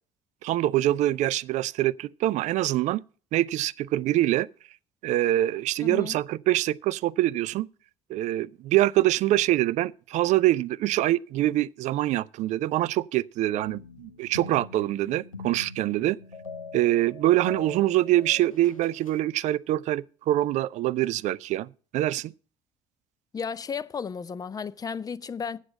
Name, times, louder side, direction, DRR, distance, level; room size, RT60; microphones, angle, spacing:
voice 1, 0.4-3.0 3.3-4.5 5.0-7.7 8.1-16.2 16.7-22.3, right 15 dB, 45° right, 0.4 m, -25 dB
voice 2, 5.8-6.2 23.3-25.6, left 6 dB, 20° left, 0.5 m, -33 dB
sound 1, 13.6-19.3, left 4 dB, 90° left, 0.4 m, -43 dB
8.2 x 7.9 x 7.3 m
figure-of-eight pair, 55°, 17 cm